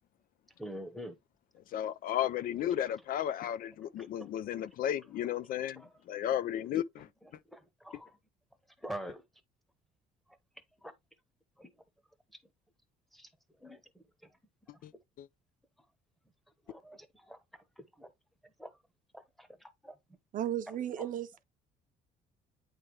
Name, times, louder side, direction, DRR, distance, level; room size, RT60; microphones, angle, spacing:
voice 1, 0.6-1.2 4.0-4.3 5.8-5.9 7.2-8.2 8.8-9.2 10.8-10.9 11.6-11.7 13.1-13.3 13.6-14.0 16.7-18.1 18.4-18.7 19.1-20.0 21.0-21.1, equal, ahead, 1.0 m, -46 dB
voice 2, 1.7-7.1 14.8-14.9 15.2-15.3, left 11 dB, 60° left, 0.4 m, -34 dB
voice 3, 20.3-21.4, right 11 dB, 50° right, 0.6 m, -35 dB
8.8 x 3.5 x 3.1 m
cardioid pair, 110°, 17 cm